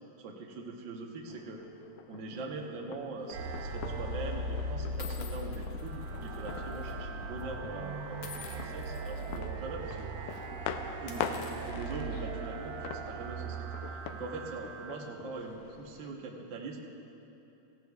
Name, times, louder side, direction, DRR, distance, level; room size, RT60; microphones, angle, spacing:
voice 1, 0.2-1.6 2.1-10.1 10.9-13.6 13.9-16.8, right 3 dB, 65° right, 0 dB, 1.1 m, -42 dB
sound 1, 1.3-16.2, left 8 dB, 90° left, 2.1 m, -44 dB
sound 2, 3.3-3.6 4.4-4.5 5.0-6.9 7.2-7.4 8.2-9.4 9.8-10.0 10.3-10.4 10.9-12.5, left 5 dB, 60° left, 1.9 m, -50 dB
sound 3, 3.3-15.0, right 2 dB, 90° right, 2.2 m, -39 dB
17.0 x 16.0 x 2.4 m, 2.9 s
omnidirectional pair, 3.5 m